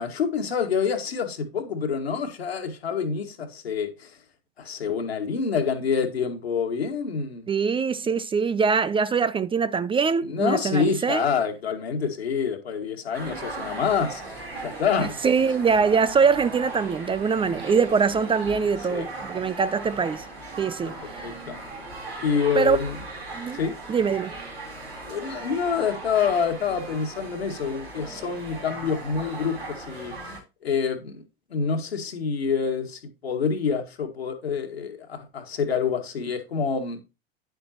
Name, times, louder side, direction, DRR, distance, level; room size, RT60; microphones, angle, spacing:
voice 1, 0.0-4.2 4.6-7.5 10.2-15.2 18.9-19.1 19.4-19.6 21.2-21.6 22.2-23.0 23.5-23.7 25.0-30.3 30.6-31.2 31.5-37.0, left 6 dB, 85° left, 2.1 m, -27 dB
voice 2, 7.5-11.2 15.0-20.3 20.6-21.3 22.6-22.8 23.3-23.6 23.9-24.3, right 5 dB, 15° right, 0.5 m, -23 dB
sound 1, 13.1-30.4, right 2 dB, 85° right, 3.8 m, -38 dB
10.0 x 7.9 x 3.0 m
hypercardioid pair, 80°, 30 cm